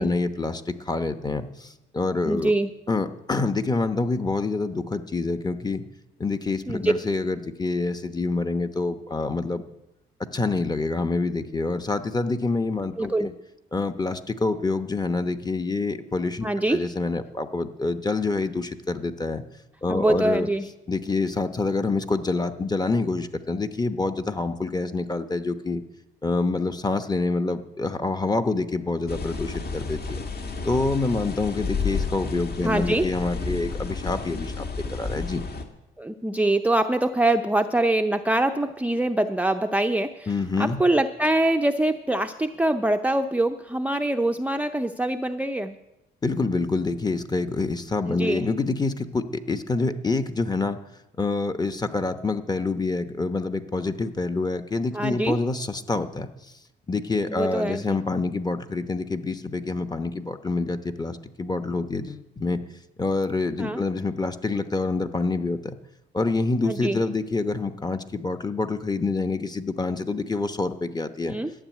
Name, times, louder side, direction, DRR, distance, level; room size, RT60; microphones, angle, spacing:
voice 1, 0.0-2.5 2.9-5.8 6.2-9.6 10.3-13.3 13.7-19.4 19.8-20.5 20.9-25.8 26.2-30.2 30.6-34.6 34.9-35.4 40.3-40.8 46.2-50.8 51.2-56.3 56.9-62.6 63.0-65.8 66.1-71.4, left 3 dB, 20° left, 8 dB, 1.0 m, -27 dB
voice 2, 2.2-2.7 6.7-6.9 13.0-13.3 16.4-16.8 19.9-20.7 32.6-33.1 36.0-45.7 48.1-48.5 54.9-55.4 57.2-58.0 63.6-63.8 66.6-67.0 71.3-71.5, right 1 dB, 5° right, 5 dB, 0.6 m, -24 dB
sound 1, 29.1-35.6, left 4 dB, 50° left, 1.9 m, -31 dB
12.5 x 7.2 x 9.5 m, 0.90 s
cardioid pair, 90°, 20 cm